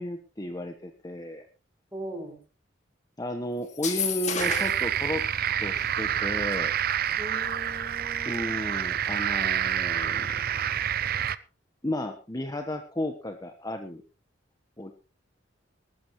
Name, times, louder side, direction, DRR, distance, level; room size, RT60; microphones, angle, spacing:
voice 1, 0.0-1.4 3.2-5.2 5.6-6.8 8.2-10.6 11.8-14.0 14.8-14.9, left 1 dB, 20° left, 6 dB, 1.2 m, -33 dB
voice 2, 1.9-2.4 7.2-8.6, right 1 dB, 10° right, 0 dB, 6.1 m, -39 dB
sound 1, 3.7-4.9, left 6 dB, 40° left, 2.7 m, -30 dB
sound 2, 4.4-11.4, right 10 dB, 50° right, 0.6 m, -28 dB
19.5 x 14.5 x 3.1 m, 0.32 s
head